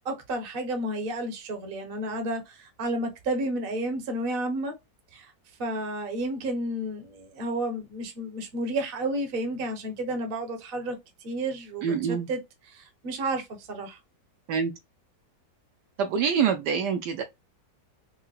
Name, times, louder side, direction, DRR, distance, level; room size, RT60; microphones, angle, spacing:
voice 1, 0.0-4.7 5.1-5.3 5.6-14.0, right 1 dB, 40° right, 0.8 m, -31 dB
voice 2, 11.8-12.3 14.5-14.7 16.0-17.2, right 7 dB, 75° right, 1.1 m, -25 dB
4.6 x 2.2 x 2.3 m
omnidirectional pair, 2.0 m